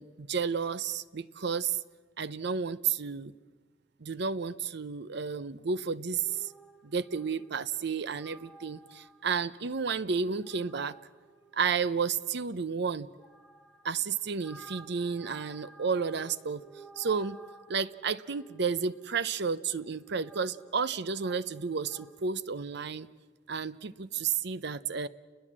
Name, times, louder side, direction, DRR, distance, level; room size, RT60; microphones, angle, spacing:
voice 1, 0.0-1.8 2.2-3.3 4.0-6.5 6.8-11.0 11.5-13.1 13.8-16.6 17.0-17.4 17.7-23.1 23.5-25.1, right 5 dB, 60° right, 16 dB, 0.7 m, -32 dB
sound 1, 6.3-22.3, right 2 dB, 5° left, 3.8 m, -56 dB
30.0 x 21.0 x 7.5 m, 1.5 s
head